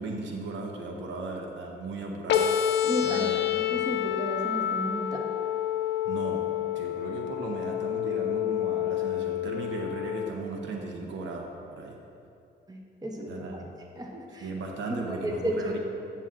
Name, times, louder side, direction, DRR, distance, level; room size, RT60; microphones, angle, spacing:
voice 1, 0.0-2.4 3.0-3.4 3.7-3.8 6.0-6.4 6.7-12.0 13.3-13.7 14.4-15.8, right 3 dB, 70° right, 1 dB, 0.9 m, -36 dB
sound 1, 2.3-10.3, left 11 dB, 60° left, 0.6 m, -28 dB
voice 2, 2.8-5.2 12.7-13.5 14.0-14.5 15.1-15.8, equal, 20° right, 1 dB, 0.9 m, -33 dB
9.1 x 7.3 x 2.5 m, 2.7 s
cardioid pair, 90°, 20 cm